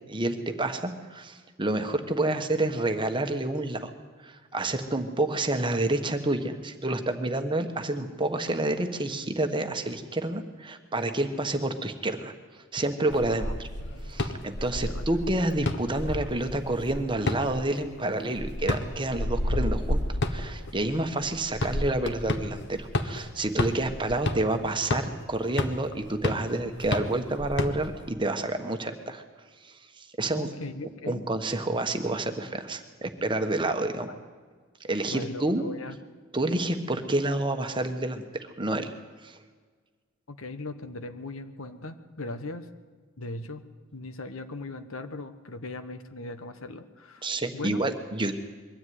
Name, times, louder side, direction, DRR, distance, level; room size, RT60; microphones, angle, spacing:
voice 1, 0.1-3.9 4.2-13.7 14.0-29.2 29.6-30.5 31.1-34.1 34.8-35.6 36.3-38.9 39.2-39.4 47.2-48.4, right 2 dB, 20° right, 7 dB, 1.3 m, -29 dB
sound 1, 13.1-28.1, left 1 dB, 55° left, 1.3 m, -31 dB
voice 2, 14.7-15.0 30.3-31.3 34.1-34.2 35.1-36.0 40.3-42.7 43.2-43.6 43.9-47.8, left 2 dB, 70° left, 9 dB, 1.3 m, -39 dB
22.5 x 13.5 x 9.5 m, 1.5 s
head